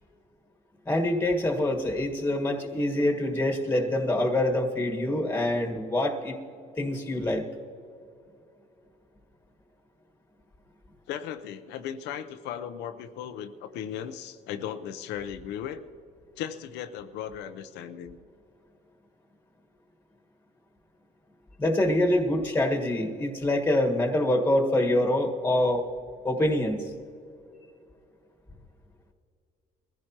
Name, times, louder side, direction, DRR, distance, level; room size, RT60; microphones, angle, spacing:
voice 1, 0.8-6.4 6.8-7.4 21.6-25.8 26.2-26.9, left 1 dB, 10° left, 2 dB, 1.6 m, -25 dB
voice 2, 11.1-15.8 16.4-18.2, left 9 dB, 85° left, 9 dB, 0.7 m, -37 dB
22.5 x 15.0 x 2.9 m, 2.6 s
cardioid pair, 110°, 17 cm